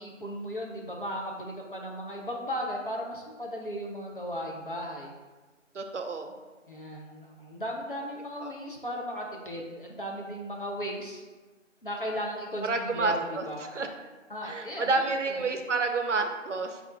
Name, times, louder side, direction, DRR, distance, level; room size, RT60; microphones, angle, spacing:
voice 1, 0.0-5.1 6.7-11.2 11.8-13.7 14.3-15.5, equal, 45° left, -2 dB, 0.6 m, -36 dB
voice 2, 5.7-6.3 8.4-8.5 12.6-13.4 13.7-13.9 14.4-16.8, right 3 dB, 70° right, 5 dB, 0.5 m, -29 dB
3.3 x 2.5 x 3.7 m, 1.3 s
figure-of-eight pair, 160°, 38 cm